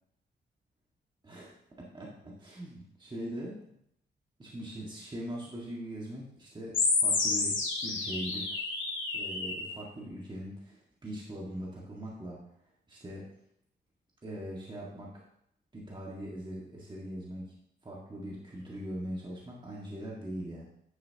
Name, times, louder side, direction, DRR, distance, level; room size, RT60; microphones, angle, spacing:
voice 1, 1.2-3.6 4.4-8.5 9.1-12.4 12.9-13.3 14.2-15.2 15.7-17.5 17.8-20.6, right 1 dB, 25° right, -4 dB, 1.9 m, -41 dB
sound 1, 6.7-9.7, left 4 dB, 80° left, 2.2 m, -30 dB
9.9 x 6.6 x 3.0 m, 0.74 s
cardioid pair, 95°, 19 cm